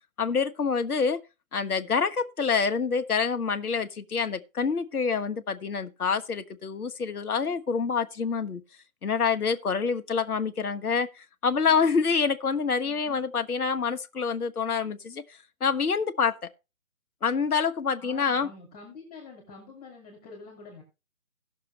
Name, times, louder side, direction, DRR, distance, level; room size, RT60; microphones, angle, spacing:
voice 1, 0.2-1.2 1.5-8.6 9.0-15.2 15.6-16.3 17.2-18.5, left 5 dB, 85° left, 1.1 m, -27 dB
voice 2, 11.6-12.0 12.8-13.3 18.0-20.8, left 4 dB, 10° left, 2.2 m, -47 dB
17.5 x 6.6 x 3.3 m
hypercardioid pair, 165°, 43 cm